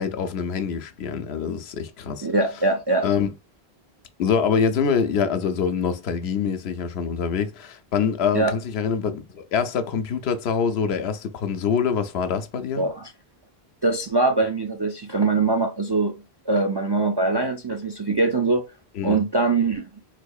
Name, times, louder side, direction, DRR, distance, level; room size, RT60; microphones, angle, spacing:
voice 1, 0.0-2.3 3.0-3.3 4.2-12.9 19.0-19.2, left 6 dB, 90° left, 0.8 m, -25 dB
voice 2, 2.2-3.1 8.3-8.5 12.8-13.1 13.8-18.7 19.0-19.8, right 3 dB, 45° right, 0.3 m, -22 dB
4.0 x 2.7 x 2.3 m
omnidirectional pair, 1.0 m